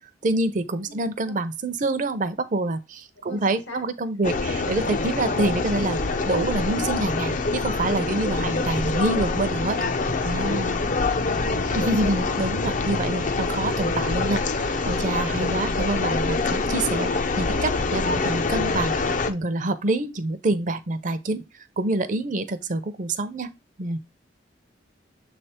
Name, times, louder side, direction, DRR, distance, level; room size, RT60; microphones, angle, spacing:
voice 1, 0.2-9.8 10.2-10.8 11.7-17.1 17.4-18.9 19.3-23.5 23.8-24.0, right 2 dB, 45° right, 0.6 m, -26 dB
voice 2, 0.9-1.4 3.2-3.8 8.4-8.6 9.7-11.0, left 2 dB, 85° left, 1.7 m, -41 dB
sound 1, 4.2-19.3, left 3 dB, 45° left, 0.6 m, -25 dB
7.1 x 3.4 x 4.3 m
head